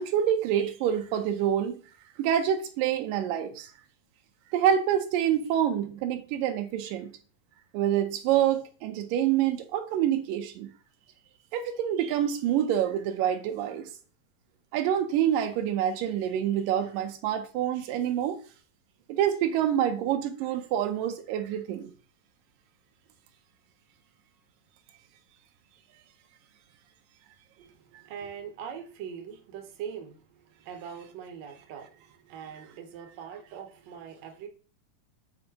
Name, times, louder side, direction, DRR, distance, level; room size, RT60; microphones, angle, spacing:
voice 1, 0.0-1.8 2.2-3.7 4.5-7.1 7.7-10.7 11.5-13.9 14.7-18.4 19.1-21.9, right 10 dB, 85° right, 2.3 m, -27 dB
voice 2, 27.6-34.5, right 8 dB, 65° right, 1.9 m, -42 dB
7.0 x 4.9 x 2.9 m
omnidirectional pair, 3.9 m